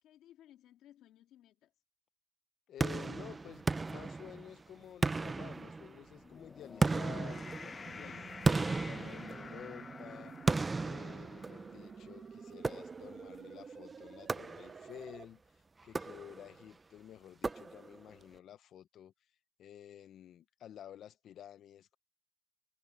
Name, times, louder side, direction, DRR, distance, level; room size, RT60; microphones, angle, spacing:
voice 1, 0.0-1.7 7.7-8.4, left 12 dB, 85° left, 2.1 m, -60 dB
voice 2, 2.7-8.1 8.5-10.3 10.8-15.4 15.8-19.1 19.6-22.0, left 10 dB, 65° left, 0.8 m, -51 dB
sound 1, 2.8-4.6 5.0-6.2 6.8-9.8 10.5-11.9 12.6-13.3 14.3-15.0 15.8-16.6 17.4-18.1, right 3 dB, 20° right, 0.5 m, -35 dB
sound 2, 6.0-12.5, left 4 dB, 30° left, 0.6 m, -50 dB
sound 3, 7.9-15.3, right 6 dB, 35° right, 1.3 m, -50 dB
cardioid pair, 130°, 0 cm